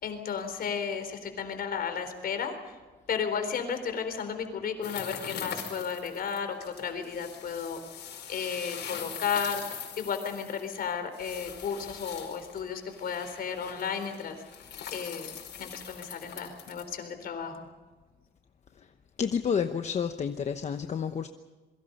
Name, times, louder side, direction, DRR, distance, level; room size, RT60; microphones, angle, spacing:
voice 1, 0.0-2.6 3.1-7.8 8.3-14.4 14.9-17.7, left 6 dB, 60° left, 8 dB, 4.0 m, -33 dB
sound 1, 4.8-16.8, left 8 dB, 85° left, 5.2 m, -42 dB
voice 2, 19.2-21.3, left 7 dB, 40° left, 7 dB, 0.9 m, -30 dB
27.5 x 23.0 x 5.4 m, 1.3 s
cardioid pair, 150°, 18 cm